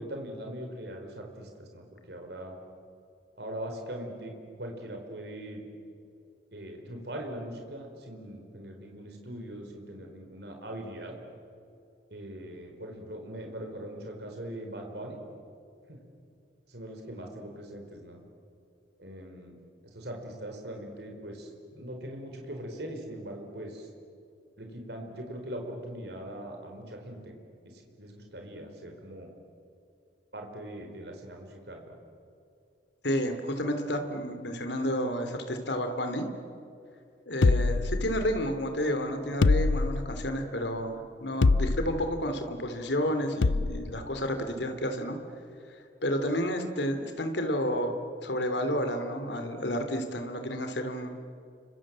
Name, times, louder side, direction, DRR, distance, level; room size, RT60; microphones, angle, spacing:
voice 1, 0.0-2.6 3.4-5.6 6.5-11.1 12.1-15.2 15.9-16.0 16.7-18.2 19.0-19.6 19.9-23.9 24.6-27.3 27.6-29.3 30.3-31.9, right 1 dB, 65° right, 3 dB, 4.6 m, -41 dB
voice 2, 33.0-36.3 37.3-45.2 46.0-48.0 48.2-51.2, equal, 70° left, 6 dB, 3.0 m, -31 dB
sound 1, 37.4-38.5 39.4-40.3 41.4-42.1 43.4-43.9, left 3 dB, 85° left, 0.6 m, -25 dB
30.0 x 25.5 x 7.6 m, 2.5 s
head